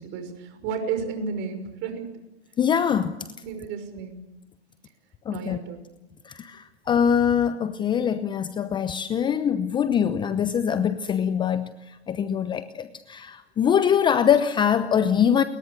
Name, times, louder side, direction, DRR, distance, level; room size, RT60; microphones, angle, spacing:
voice 1, 0.0-2.1 3.4-4.2 5.3-5.8, right 6 dB, 35° right, 5.9 m, -32 dB
voice 2, 2.6-3.2 5.3-5.6 6.3-11.7 12.1-15.4, left 8 dB, 15° left, 0.8 m, -23 dB
29.5 x 22.0 x 6.7 m
hypercardioid pair, 125°, 33 cm